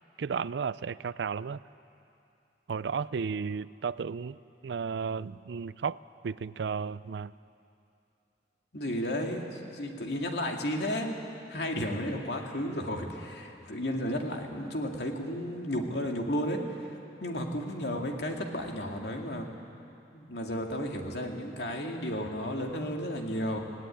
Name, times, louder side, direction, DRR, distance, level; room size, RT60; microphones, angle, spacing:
voice 1, 0.2-1.6 2.7-7.3, right 6 dB, 80° right, 18 dB, 0.4 m, -34 dB
voice 2, 8.7-11.2 11.5-16.9 17.2-19.5 20.1-23.6, equal, 75° left, 2 dB, 2.2 m, -33 dB
17.5 x 17.0 x 9.9 m, 2.7 s
head